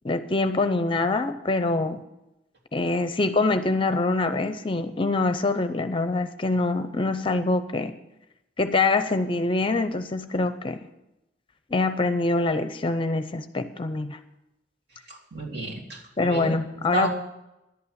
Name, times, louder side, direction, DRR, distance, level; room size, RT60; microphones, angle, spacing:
voice 1, 0.0-2.0 2.7-8.0 8.6-10.8 11.7-14.2 16.2-17.1, left 3 dB, 30° left, 10 dB, 0.6 m, -24 dB
voice 2, 15.1-16.6 16.9-17.1, right 3 dB, 60° right, -3 dB, 3.2 m, -31 dB
11.0 x 8.5 x 8.0 m, 0.91 s
head